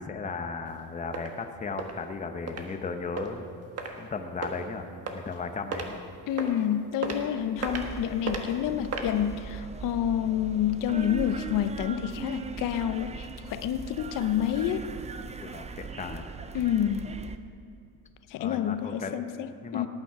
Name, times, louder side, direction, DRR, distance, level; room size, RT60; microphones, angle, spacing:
voice 1, 0.0-3.4 4.0-6.0 15.4-16.3 18.4-19.2 19.6-19.9, left 4 dB, 20° left, 6 dB, 0.8 m, -36 dB
sound 1, 0.7-0.8 1.1-1.3 1.8-1.9 2.5-2.6 3.2-3.3 3.8-3.9 4.4-4.6 5.1-5.4 5.7-5.9 6.4-6.6 7.0-7.2 7.6-7.9 8.3-8.4 8.8-9.1, right 5 dB, 40° right, 1.4 m, -33 dB
voice 2, 6.3-14.9 16.5-17.2 18.3-19.9, left 10 dB, 60° left, 11 dB, 0.6 m, -28 dB
sound 2, 7.6-17.4, right 4 dB, 20° right, 0.5 m, -40 dB
18.0 x 9.0 x 4.8 m, 2.4 s
cardioid pair, 130°, 36 cm